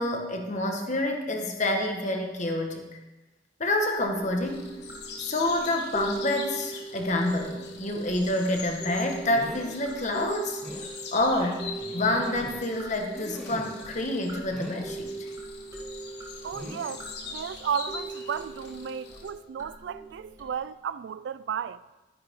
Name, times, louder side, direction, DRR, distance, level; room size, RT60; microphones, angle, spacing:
voice 1, 0.0-2.8 3.6-4.7 5.2-10.6 11.1-15.3, left 1 dB, 40° left, 1.4 m, -28 dB
sound 1, 4.0-20.5, right 3 dB, 20° right, 1.9 m, -41 dB
sound 2, 4.4-19.3, left 5 dB, 65° left, 1.4 m, -44 dB
sound 3, 8.4-8.5 9.3-9.8 10.2-10.3 10.6-10.9 11.8-12.7 13.1-13.9 14.5-14.9 16.5-16.9 18.1-18.3 18.7-18.8, left 1 dB, 5° left, 2.1 m, -41 dB
voice 2, 16.4-21.8, right 7 dB, 75° right, 0.3 m, -34 dB
12.5 x 10.0 x 3.7 m
head